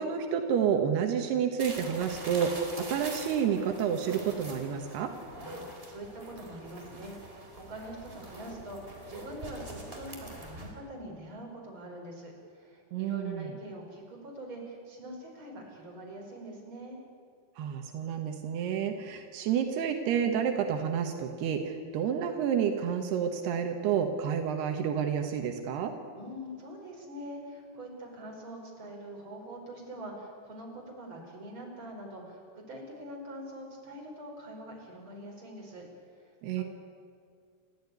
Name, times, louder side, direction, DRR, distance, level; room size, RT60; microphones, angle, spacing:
voice 1, 0.0-5.1 12.9-13.5 17.6-25.9 36.4-36.6, right 8 dB, 80° right, 5 dB, 3.3 m, -29 dB
sound 1, 1.6-10.7, right 1 dB, 15° right, 3.4 m, -44 dB
voice 2, 5.4-17.0 26.1-35.8 36.1-36.6, right 1 dB, 30° right, 0 dB, 5.6 m, -44 dB
29.5 x 14.0 x 9.6 m, 2.2 s
omnidirectional pair, 4.6 m